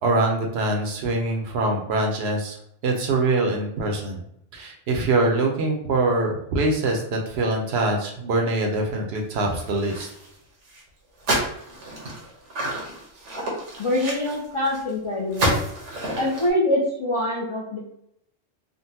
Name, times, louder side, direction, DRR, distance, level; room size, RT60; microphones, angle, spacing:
voice 1, 0.0-2.6 2.8-4.2 4.5-10.1, right 2 dB, 70° right, 1 dB, 0.8 m, -24 dB
sound 1, 9.4-10.4 10.7-10.8 11.2-14.9 15.3-16.5, right 1 dB, 85° right, 1.2 m, -29 dB
voice 2, 13.8-15.6 16.2-17.8, left 1 dB, 45° left, -6 dB, 0.4 m, -24 dB
3.7 x 2.1 x 2.7 m, 0.73 s
omnidirectional pair, 1.2 m